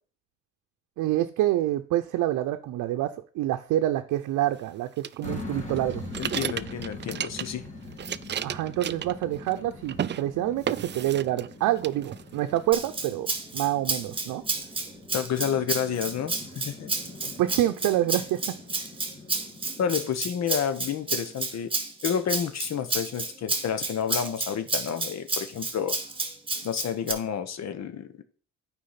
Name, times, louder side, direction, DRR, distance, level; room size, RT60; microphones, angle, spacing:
voice 1, 1.0-4.9 5.2-6.0 8.4-13.3 13.5-14.4 17.2-18.6, right 14 dB, 90° right, 6 dB, 0.6 m, -27 dB
sound 1, 5.0-7.7 7.9-9.6 9.9-10.2 10.6-11.5 11.8-12.6, right 9 dB, 35° right, 0.4 m, -33 dB
sound 2, 5.2-20.0, left 2 dB, 25° left, 2.7 m, -43 dB
voice 2, 6.2-7.6 15.1-16.9 19.8-21.7 22.0-26.0 26.6-28.1, left 8 dB, 60° left, 10 dB, 1.1 m, -30 dB
Rattle (instrument), 12.7-27.1, right 3 dB, 15° right, 1.5 m, -31 dB
8.6 x 4.8 x 5.7 m, 0.41 s
cardioid pair, 90°, 30 cm